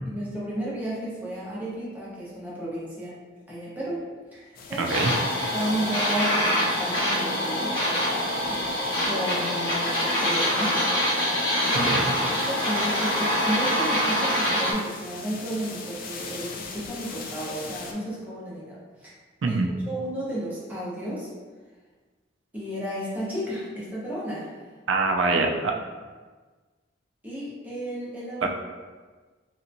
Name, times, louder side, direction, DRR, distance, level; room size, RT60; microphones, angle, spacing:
voice 1, 0.0-3.1 3.5-5.0 5.5-8.2 8.5-8.6 9.0-10.8 11.6-11.9 12.3-19.1 19.5-19.6 19.9-21.3 22.5-24.6 27.2-28.5, right 1 dB, 10° right, -8 dB, 0.9 m, -33 dB
sound 1, 4.5-17.9, left 4 dB, 45° left, 0.4 m, -41 dB
sound 2, 4.8-14.7, equal, 75° left, 1.1 m, -25 dB
voice 2, 4.8-5.1 11.7-12.0 19.4-19.7 24.9-25.7 28.4-28.5, right 3 dB, 65° right, 3 dB, 0.4 m, -24 dB
3.3 x 2.8 x 2.6 m, 1.4 s
head